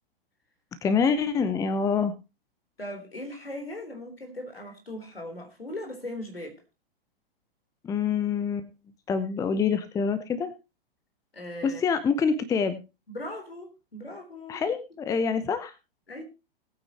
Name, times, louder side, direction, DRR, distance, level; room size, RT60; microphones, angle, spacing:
voice 1, 0.8-2.1 7.8-8.7 9.1-10.5 11.6-12.8 14.5-15.7, left 5 dB, 10° left, 13 dB, 0.8 m, -26 dB
voice 2, 2.8-6.6 11.3-12.0 13.1-14.6 16.1-16.2, left 1 dB, 80° left, 5 dB, 3.7 m, -39 dB
20.0 x 9.1 x 2.9 m, 0.28 s
figure-of-eight pair, 110°, 30 cm